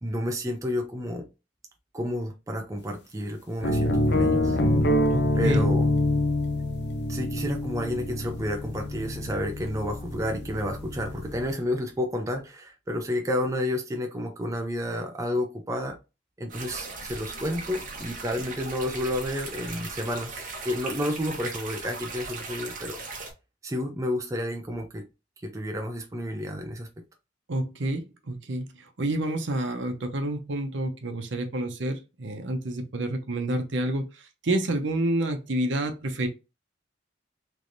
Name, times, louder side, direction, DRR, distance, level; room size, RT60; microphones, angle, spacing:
voice 1, 0.0-1.3 1.9-4.6 5.4-5.9 7.1-16.0 16.4-23.0 23.6-25.1 25.4-26.9, left 1 dB, 15° right, 0.5 m, -30 dB
sound 1, 3.6-11.5, left 1 dB, 55° left, 0.6 m, -26 dB
voice 2, 5.1-5.7 27.5-36.3, right 1 dB, 70° right, 0.8 m, -29 dB
sound 2, 16.5-23.3, right 3 dB, 45° right, 1.1 m, -38 dB
3.3 x 3.1 x 2.6 m
head